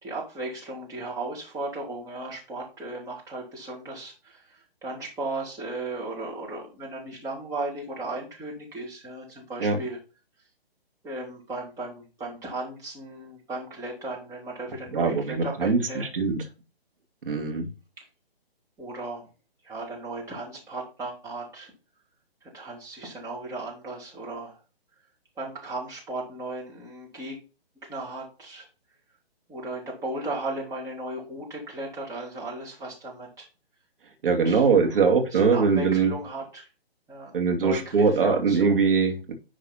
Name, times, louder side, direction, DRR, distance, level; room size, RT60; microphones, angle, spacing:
voice 1, 0.0-10.0 11.0-16.1 17.3-17.5 18.0-18.1 18.8-19.2 19.6-21.7 22.4-24.6 25.4-27.4 27.8-28.7 29.5-33.5 34.2-35.0 35.3-36.7 37.1-38.8, right 2 dB, 10° right, 2.6 m, -36 dB
voice 2, 14.9-16.4 17.3-17.7 34.2-36.1 37.3-39.3, right 5 dB, 60° right, 2.6 m, -22 dB
10.5 x 4.0 x 4.3 m
figure-of-eight pair, 140°, 31 cm